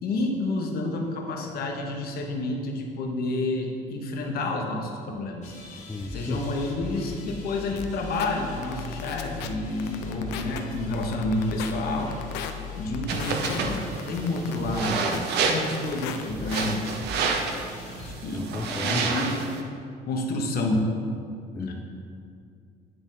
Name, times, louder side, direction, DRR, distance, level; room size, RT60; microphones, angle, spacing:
voice 1, 0.0-5.5 6.1-12.1 12.4-17.0 17.9-19.5 20.1-20.9 21.6-21.7, left 2 dB, 65° left, 2 dB, 1.1 m, -29 dB
sound 1, 5.4-18.1, left 4 dB, 45° left, 1.4 m, -40 dB
voice 2, 5.9-6.4 18.3-19.1 21.6-21.7, left 2 dB, 10° left, 4 dB, 0.3 m, -33 dB
sound 2, 7.8-7.9 8.2-8.3 8.6-9.5 9.8-10.6 10.9-11.7 12.1-12.5 12.9-13.6 14.0-15.2 15.5-16.2 16.5-16.7, left 10 dB, 90° left, 0.5 m, -35 dB
sound 3, 13.1-19.6, right 4 dB, 80° right, 0.7 m, -29 dB
9.8 x 3.9 x 3.9 m, 2.4 s
cardioid pair, 110°, 17 cm